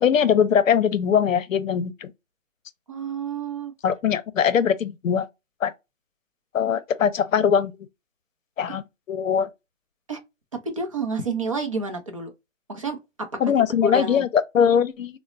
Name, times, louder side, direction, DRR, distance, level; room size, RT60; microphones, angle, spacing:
voice 1, 0.0-2.1 3.8-5.3 5.6-5.7 6.5-7.7 8.6-8.8 9.1-9.5 13.4-15.2, left 7 dB, 85° left, 0.6 m, -21 dB
voice 2, 2.9-3.7 10.1-10.2 10.6-12.3 12.7-13.0 13.8-14.3, right 3 dB, 25° right, 0.5 m, -29 dB
3.9 x 2.0 x 2.4 m
hypercardioid pair, 155°, 38 cm